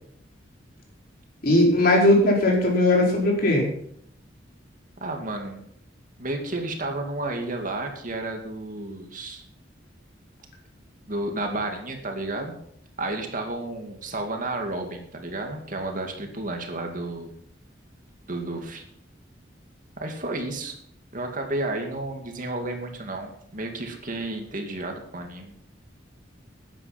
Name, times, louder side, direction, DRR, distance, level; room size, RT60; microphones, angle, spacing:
voice 1, 1.4-3.7, left 1 dB, 55° left, -1 dB, 4.6 m, -19 dB
voice 2, 5.0-5.6 6.2-9.4 11.1-12.6 13.0-17.3 18.3-18.8 20.0-20.8 21.1-25.5, right 2 dB, 45° right, 3 dB, 2.3 m, -32 dB
13.5 x 10.0 x 6.0 m, 0.69 s
head